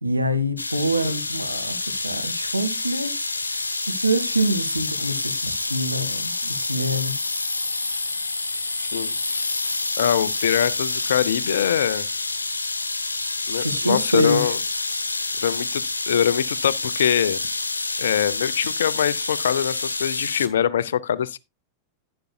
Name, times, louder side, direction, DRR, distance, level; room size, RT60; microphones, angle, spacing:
voice 1, 0.0-3.5 3.9-7.2 13.5-14.5, right 1 dB, 85° right, 1.2 m, -26 dB
sound 1, 0.6-20.5, left 3 dB, 80° left, 1.0 m, -28 dB
voice 2, 8.9-9.4 10.0-12.1 13.5-14.6 15.4-17.4 18.0-21.4, left 9 dB, 65° left, 0.5 m, -23 dB
11.5 x 10.0 x 2.2 m
figure-of-eight pair, 90°, 0 cm